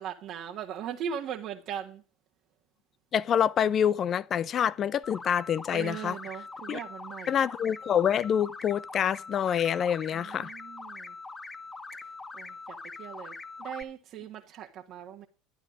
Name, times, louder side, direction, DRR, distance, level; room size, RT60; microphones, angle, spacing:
voice 1, 0.0-2.0 5.7-7.5 10.1-11.1 12.3-15.3, right 8 dB, 50° right, 1.4 m, -39 dB
voice 2, 3.1-6.2 6.7-6.8 7.3-10.5, left 9 dB, 40° left, 0.7 m, -26 dB
sound 1, 5.0-13.8, left 3 dB, 20° left, 1.4 m, -43 dB
12.5 x 11.0 x 5.1 m
hypercardioid pair, 75°, 0 cm